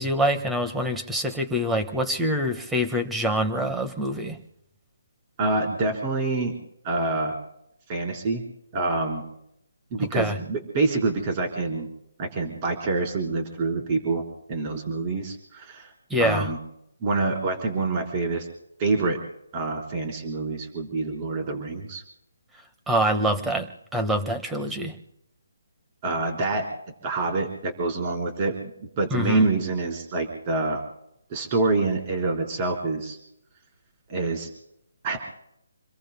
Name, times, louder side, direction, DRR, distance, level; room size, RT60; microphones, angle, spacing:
voice 1, 0.0-4.4 10.1-10.4 16.1-16.5 22.9-23.7 23.9-24.9 29.1-29.5, equal, 5° right, 7 dB, 1.5 m, -25 dB
voice 2, 5.4-6.5 6.8-7.4 7.9-8.4 8.7-9.3 9.9-11.9 12.2-15.9 16.2-16.6 17.0-18.5 18.8-19.2 19.5-22.0 26.0-26.6 27.0-28.7 29.0-30.8 31.3-33.2 34.1-34.5 35.0-35.2, right 3 dB, 30° right, 2 dB, 4.1 m, -26 dB
29.0 x 22.0 x 2.2 m, 0.77 s
figure-of-eight pair, 155°, 0 cm